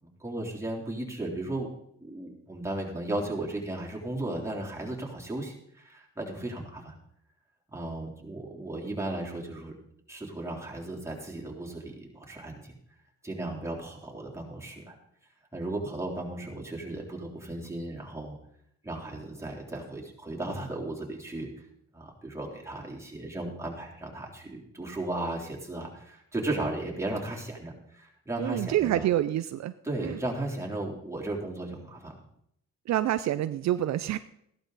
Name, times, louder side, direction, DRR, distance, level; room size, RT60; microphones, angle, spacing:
voice 1, 0.0-1.7 2.0-6.9 7.7-9.8 10.1-12.8 13.2-14.9 15.5-18.4 18.8-21.6 21.9-29.1 29.8-32.1, right 2 dB, 10° right, -2 dB, 3.4 m, -35 dB
voice 2, 28.4-29.7 30.0-30.2 32.9-34.2, right 13 dB, 65° right, 12 dB, 0.5 m, -27 dB
14.5 x 12.0 x 4.0 m, 0.73 s
cardioid pair, 90°, 30 cm